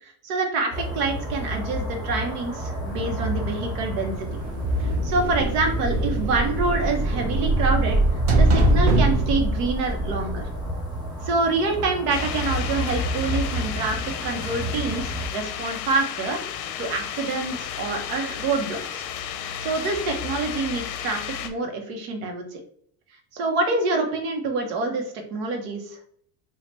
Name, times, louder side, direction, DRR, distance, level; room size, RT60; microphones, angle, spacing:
voice 1, 0.0-4.3 4.8-8.0 8.4-10.5 11.2-16.4 16.8-19.1 19.6-22.6 23.3-26.0, right 3 dB, 90° right, 4 dB, 1.0 m, -26 dB
sound 1, 0.7-15.3, right 1 dB, 10° right, 0.3 m, -30 dB
sound 2, 4.2-10.9, right 1 dB, 50° right, 0.8 m, -23 dB
sound 3, 12.1-21.5, left 9 dB, 60° left, 0.5 m, -33 dB
3.0 x 2.4 x 4.3 m, 0.63 s
cardioid pair, 180°, 45 cm